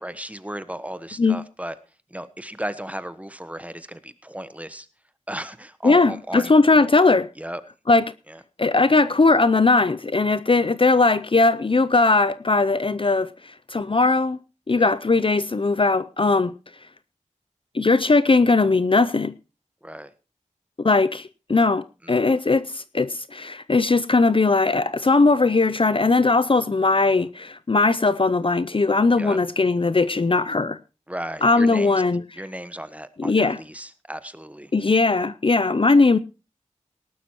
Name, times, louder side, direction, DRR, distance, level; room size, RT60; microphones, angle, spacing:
voice 1, 0.0-1.7 2.1-4.9 5.3-6.5 7.4-7.6 8.3-8.4 14.7-14.9 19.8-20.1 22.0-22.2 29.2-29.4 31.1-32.0 32.4-34.7, right 1 dB, 10° right, 1.3 m, -35 dB
voice 2, 5.8-7.3 7.9-8.0 8.6-14.4 14.7-16.5 17.7-19.3 20.8-30.8 31.4-32.2 33.2-33.6 34.7-36.2, left 3 dB, 45° left, 0.5 m, -19 dB
18.5 x 12.0 x 3.0 m
wide cardioid pair, 50°, 13 cm